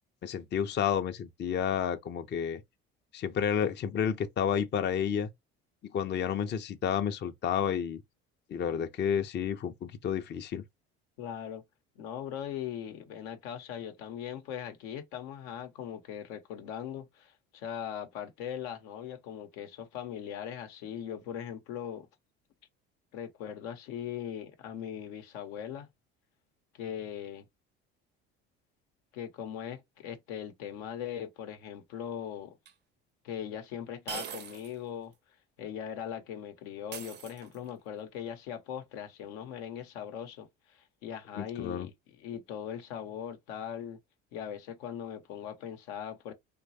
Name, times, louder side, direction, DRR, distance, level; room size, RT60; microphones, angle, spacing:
voice 1, 0.2-2.6 3.1-5.3 5.9-8.0 8.5-10.6 41.4-41.9, left 8 dB, 35° left, 0.5 m, -30 dB
voice 2, 11.2-11.6 12.0-22.1 23.1-25.9 26.7-27.5 29.1-32.6 33.2-35.1 35.6-44.0 44.3-46.3, left 9 dB, 75° left, 0.8 m, -40 dB
sound 1, 32.7-32.8 34.1-34.8 35.1-35.2 36.9-37.8, right 7 dB, 35° right, 0.5 m, -42 dB
3.0 x 2.2 x 2.6 m
hypercardioid pair, 65°, 33 cm